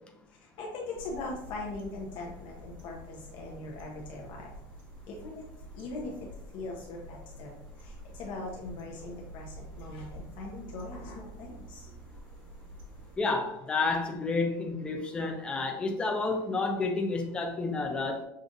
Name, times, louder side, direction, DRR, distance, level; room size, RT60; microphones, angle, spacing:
voice 1, 0.4-4.5 5.1-5.4 5.7-6.1 6.5-7.5 7.8-11.8, left 2 dB, 50° left, -1 dB, 0.7 m, -40 dB
sound 1, 0.9-13.2, equal, 45° right, 1.4 m, -48 dB
voice 2, 13.2-18.2, left 3 dB, 10° left, 2 dB, 0.4 m, -30 dB
6.4 x 2.5 x 2.5 m, 0.82 s
cardioid pair, 165°, 11 cm